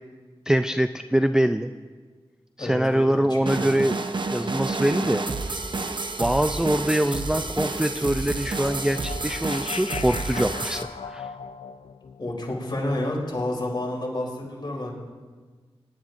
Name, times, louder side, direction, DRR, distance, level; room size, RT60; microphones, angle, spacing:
voice 1, 0.5-1.7 2.6-4.0 4.3-5.2 6.2-11.3, right 1 dB, 5° right, 8 dB, 0.3 m, -24 dB
voice 2, 2.6-3.9 12.2-14.9, left 1 dB, 45° left, -3 dB, 3.2 m, -30 dB
sound 1, 3.5-10.8, right 3 dB, 50° right, 0.7 m, -30 dB
sound 2, 7.1-13.4, left 6 dB, 80° left, 0.4 m, -39 dB
21.5 x 10.5 x 2.5 m, 1.4 s
wide cardioid pair, 60°, 10 cm